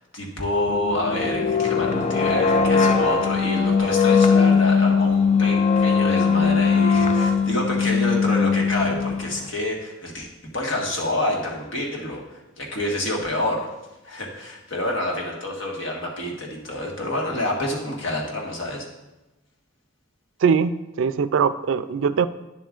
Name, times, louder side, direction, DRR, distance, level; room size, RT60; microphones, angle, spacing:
voice 1, 0.0-13.7 14.0-18.9, left 1 dB, 70° left, -1 dB, 1.6 m, -28 dB
sound 1, 0.7-9.5, left 5 dB, 35° left, 0.4 m, -20 dB
voice 2, 20.4-22.3, right 6 dB, 70° right, 13 dB, 0.3 m, -21 dB
9.7 x 7.4 x 2.4 m, 0.98 s
head